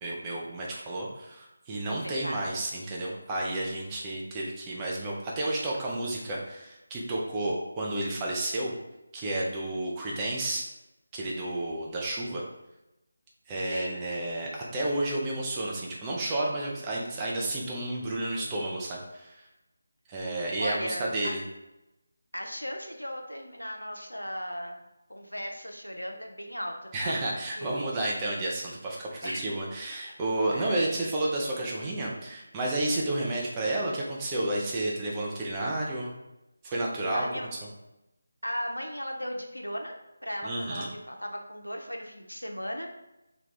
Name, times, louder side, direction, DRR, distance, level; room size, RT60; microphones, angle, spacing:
voice 1, 0.0-8.7 9.1-10.6 11.1-12.4 13.5-19.4 20.1-21.4 26.9-36.1 36.6-37.3 40.4-40.9, right 1 dB, 15° right, -4 dB, 0.5 m, -31 dB
voice 2, 2.2-2.6 13.7-14.0 20.6-21.3 22.3-24.8 25.1-27.1 27.6-27.9 29.2-29.5 30.5-30.9 37.1-37.5 38.4-39.9 40.2-42.9, equal, 90° left, 2 dB, 0.6 m, -36 dB
2.9 x 2.3 x 3.7 m, 0.93 s
figure-of-eight pair, 160°, 0 cm